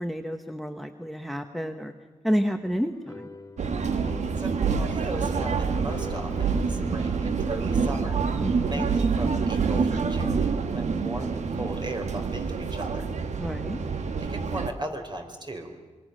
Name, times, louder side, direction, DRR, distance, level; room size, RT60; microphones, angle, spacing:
voice 1, 0.0-1.9 2.2-3.3 8.4-8.9 10.9-11.1 13.4-13.8, equal, ahead, 6 dB, 1.1 m, -30 dB
sound 1, 2.9-8.7, left 3 dB, 25° left, 1.7 m, -43 dB
sound 2, 3.6-14.7, right 5 dB, 90° right, 1.3 m, -27 dB
voice 2, 4.4-8.2 8.7-13.1 14.2-15.7, right 2 dB, 40° right, 4 dB, 3.7 m, -37 dB
Brass instrument, 6.9-11.0, right 3 dB, 70° right, 4.4 m, -49 dB
26.0 x 22.5 x 6.4 m, 1.4 s
wide cardioid pair, 95°, 12 cm